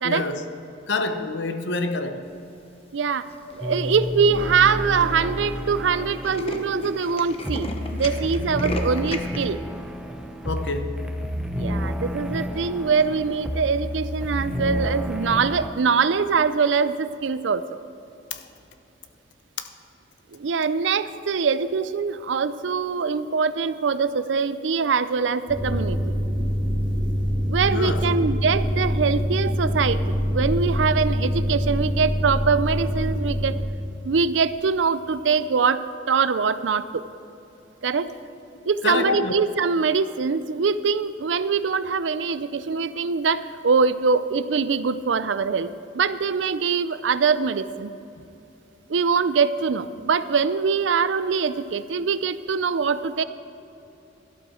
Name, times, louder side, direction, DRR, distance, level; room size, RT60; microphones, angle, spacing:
voice 1, 0.0-0.4 0.9-2.3 10.4-11.0 18.3-18.4 19.6-19.7 27.7-28.0 38.8-39.5, left 3 dB, 80° left, 0.9 m, -27 dB
voice 2, 2.9-3.3 3.5-9.6 11.6-17.6 20.3-26.0 27.5-33.5 34.0-37.0 37.8-38.1 38.7-45.7 45.9-47.9 48.9-53.2, right 5 dB, 90° right, 0.5 m, -23 dB
Tools, 3.3-3.7 4.3-4.4 4.7-4.8 5.0-5.2 5.5-5.6 5.9-9.4, left 2 dB, 35° left, 0.9 m, -34 dB
sound 1, 3.6-15.7, equal, 5° right, 0.6 m, -30 dB
sound 2, 25.5-33.7, equal, 20° right, 2.1 m, -25 dB
12.5 x 12.0 x 4.4 m
head